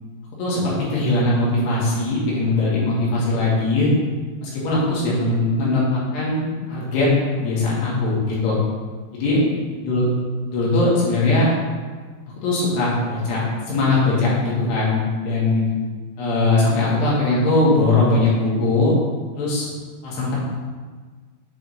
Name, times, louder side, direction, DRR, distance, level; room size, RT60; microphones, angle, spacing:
voice 1, 0.4-3.9 4.4-7.1 7.3-8.6 9.1-9.4 9.9-10.0 10.5-11.5 12.4-13.4 13.7-15.6 16.2-18.9 19.3-19.7 20.0-20.4, left 2 dB, 70° left, -6 dB, 3.5 m, -20 dB
7.9 x 3.4 x 5.3 m, 1.5 s
omnidirectional pair, 5.3 m